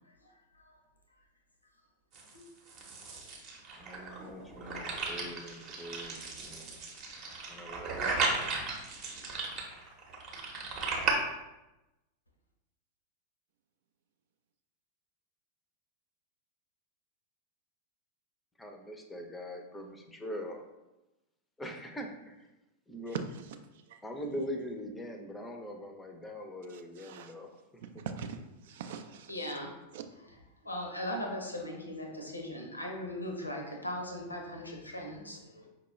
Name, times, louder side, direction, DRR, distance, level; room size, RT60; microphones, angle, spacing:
sound 1, 2.1-11.1, right 4 dB, 40° right, 0.8 m, -36 dB
voice 1, 3.8-6.8 7.5-8.3 18.6-20.6 21.6-22.4 22.9-23.2 24.0-27.5, equal, 10° left, 4 dB, 0.5 m, -42 dB
voice 2, 23.1-23.4 23.7-24.0 26.7-27.3 28.0-29.6 29.9-30.0, right 6 dB, 55° right, 8 dB, 0.3 m, -42 dB
voice 3, 29.3-29.7 30.6-35.7, left 1 dB, 80° left, 2 dB, 0.6 m, -39 dB
5.0 x 2.2 x 3.0 m, 0.97 s
figure-of-eight pair, 90°, 0 cm